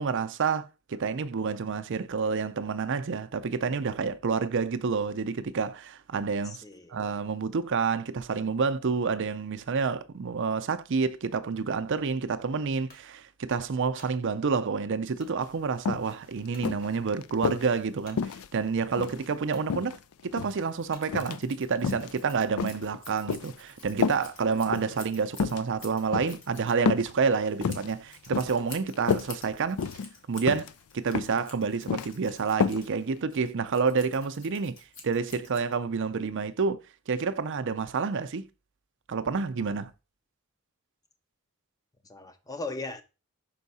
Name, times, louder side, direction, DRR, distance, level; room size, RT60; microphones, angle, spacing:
voice 1, 0.0-6.6 6.9-18.2 18.5-20.0 20.3-29.8 30.3-34.8 35.0-36.8 37.1-38.5 39.1-39.9, right 5 dB, 55° right, 0.5 m, -29 dB
voice 2, 6.4-7.0 42.0-43.0, left 3 dB, 15° left, 0.6 m, -38 dB
sound 1, 12.9-13.1 13.7-14.2 15.2-15.4 15.9-16.0 16.5-16.7 18.0-18.2 19.0-19.1 19.5-19.7 20.9-21.1, left 2 dB, 45° left, 1.9 m, -54 dB
sound 2, 15.4-15.5 15.9-16.1 16.6-17.7 18.2-19.3 19.7-20.6 21.1-21.4 21.8-22.1 22.6-23.6 24.0-24.2 24.7-24.9 25.3-25.6 26.1-26.4 26.9-27.1 27.5-27.9 28.3-28.6 28.9-29.3 29.8-30.1 30.5-30.7 31.1-31.4 31.7-32.1 32.6-32.8 33.2-33.3, left 5 dB, 85° left, 0.4 m, -29 dB
Scissors, 20.4-36.1, left 3 dB, 60° left, 1.5 m, -50 dB
5.7 x 4.6 x 4.1 m
head